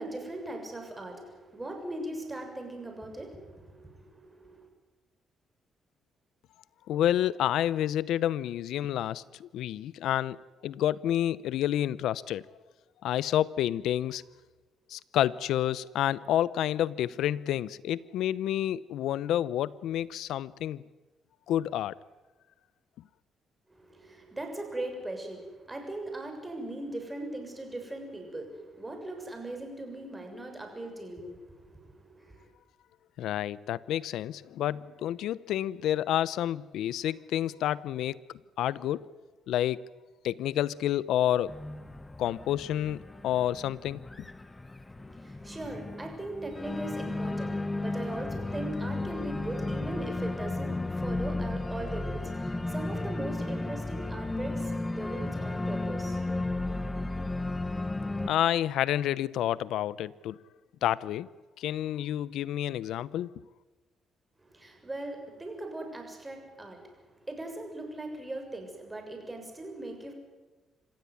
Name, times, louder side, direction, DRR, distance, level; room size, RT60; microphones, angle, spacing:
voice 1, 0.0-4.1 4.4-4.7 23.8-32.4 45.1-57.3 64.5-66.8 67.3-70.1, right 1 dB, 15° right, 6.9 m, -40 dB
voice 2, 6.9-10.4 10.6-12.4 13.0-14.2 14.9-20.8 21.5-21.9 33.2-38.2 38.6-39.1 39.5-39.8 40.2-41.5 42.2-44.3 58.3-60.4 60.8-61.3 61.6-63.3, left 12 dB, 85° left, 0.7 m, -29 dB
Organ, 41.5-58.3, left 2 dB, 15° left, 1.3 m, -34 dB
27.0 x 15.5 x 9.6 m
cardioid pair, 90°, 0 cm